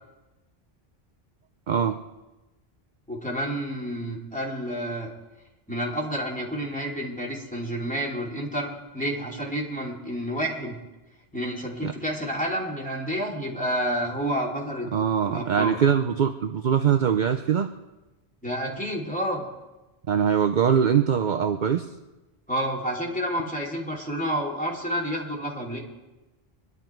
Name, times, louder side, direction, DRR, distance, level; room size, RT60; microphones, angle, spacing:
voice 1, 1.7-2.0 11.8-11.9 14.9-17.7 20.1-21.8, right 7 dB, 55° right, 7 dB, 0.7 m, -22 dB
voice 2, 3.1-5.1 5.7-10.7 11.3-15.8 18.4-19.5 22.5-25.8, equal, 5° left, -3 dB, 2.9 m, -29 dB
23.5 x 11.0 x 4.5 m, 1.1 s
omnidirectional pair, 1.1 m